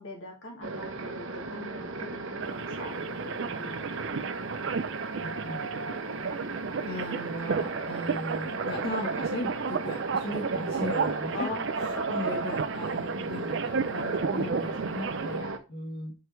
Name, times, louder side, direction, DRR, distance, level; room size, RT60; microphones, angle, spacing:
voice 1, 0.0-4.0 11.3-12.6, left 2 dB, 80° left, 0 dB, 2.3 m, -42 dB
sound 1, 0.6-15.6, right 3 dB, 80° right, 0.9 m, -35 dB
sound 2, 2.4-15.4, right 5 dB, 65° right, 0.4 m, -33 dB
voice 2, 5.2-5.6 6.8-11.5 11.8-16.1, left 1 dB, 50° left, -2 dB, 1.8 m, -37 dB
4.9 x 4.7 x 4.5 m, 0.31 s
head